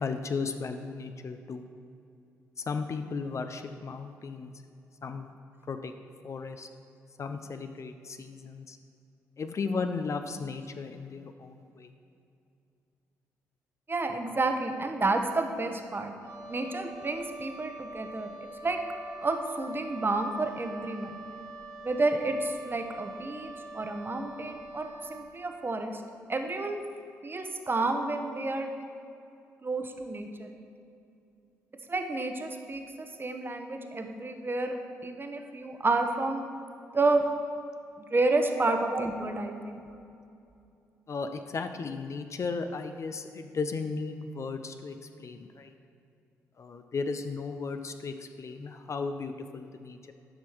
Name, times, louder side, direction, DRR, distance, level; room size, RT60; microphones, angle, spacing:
voice 1, 0.0-1.6 2.7-4.5 5.0-5.3 5.7-5.9 6.2-6.7 7.2-8.8 9.4-11.9 38.6-38.8 41.1-45.7 46.6-50.1, left 4 dB, 40° left, 8 dB, 0.5 m, -35 dB
voice 2, 13.9-16.1 16.5-18.3 18.6-18.8 19.2-21.2 21.8-26.0 26.3-26.8 27.2-28.7 29.6-30.5 31.9-34.8 35.0-36.5 36.9-37.2 38.0-39.8, right 2 dB, 25° right, 5 dB, 0.9 m, -30 dB
Wind instrument woodwind instrument, 16.2-25.3, right 2 dB, 65° right, 1.8 m, -44 dB
10.5 x 6.0 x 4.6 m, 2.6 s
figure-of-eight pair, 40°, 8 cm